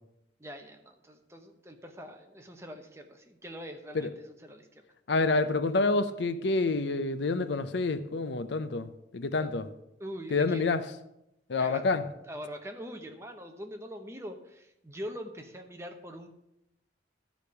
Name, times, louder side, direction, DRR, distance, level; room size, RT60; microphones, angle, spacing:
voice 1, 0.4-4.8 9.4-9.5 10.0-10.7 11.6-12.0 12.2-16.3, equal, 15° right, 4 dB, 0.9 m, -43 dB
voice 2, 5.1-9.7 10.3-10.8 11.5-12.0, left 3 dB, 65° left, 12 dB, 0.6 m, -28 dB
12.0 x 5.1 x 6.7 m, 0.84 s
head